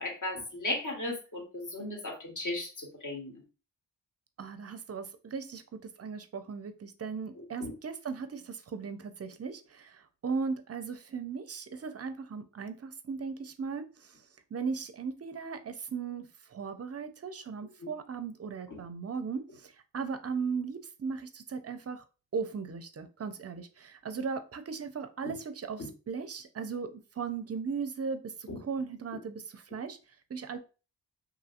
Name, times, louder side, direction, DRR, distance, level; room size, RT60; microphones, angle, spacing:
voice 1, 0.0-3.3 7.4-7.7 17.8-17.9 18.7-18.8 25.2-25.3 25.8-25.9 28.5-28.6, left 2 dB, 45° left, 1 dB, 1.1 m, -36 dB
voice 2, 4.4-13.9 14.5-22.0 22.3-30.0 30.3-30.6, right 5 dB, 35° right, 9 dB, 0.4 m, -37 dB
2.8 x 2.7 x 2.4 m, 0.33 s
cardioid pair, 45°, 42 cm